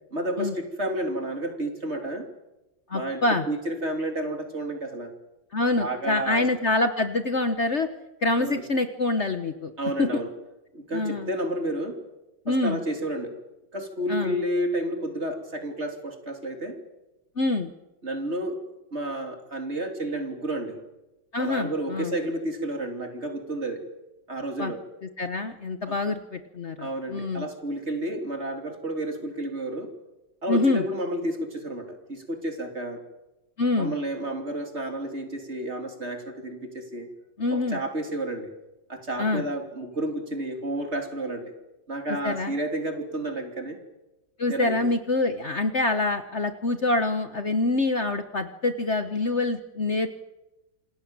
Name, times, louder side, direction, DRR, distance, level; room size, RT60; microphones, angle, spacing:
voice 1, 0.1-2.3 2.9-5.1 5.8-6.5 8.4-8.6 9.8-10.3 10.7-12.0 12.5-13.4 13.7-16.8 18.0-18.6 18.9-20.8 21.4-23.8 24.3-24.8 25.9-26.0 26.8-29.9 30.4-33.0 33.8-37.1 37.5-38.5 38.9-41.5 41.9-43.8 44.5-44.8, right 1 dB, 35° right, 5 dB, 3.5 m, -31 dB
voice 2, 2.9-3.4 5.5-7.9 8.2-9.7 10.0-10.1 10.9-11.3 12.4-12.8 14.1-14.3 17.4-17.7 21.3-22.1 24.6-24.7 25.2-27.5 30.5-30.8 33.6-33.9 37.4-37.8 39.2-39.4 42.2-42.5 44.4-50.1, left 2 dB, 40° left, 9 dB, 1.4 m, -25 dB
27.5 x 20.0 x 8.9 m, 1.0 s
omnidirectional pair, 1.9 m